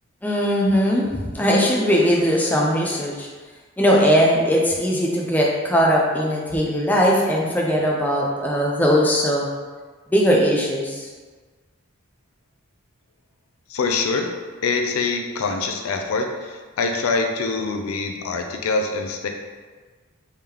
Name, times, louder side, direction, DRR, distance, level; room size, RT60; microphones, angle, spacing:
voice 1, 0.2-3.3 3.8-9.5 10.1-11.1, equal, 10° left, -3 dB, 0.4 m, -19 dB
voice 2, 13.7-14.3 14.6-19.3, left 4 dB, 75° left, 4 dB, 0.4 m, -24 dB
3.6 x 2.9 x 3.4 m, 1.4 s
head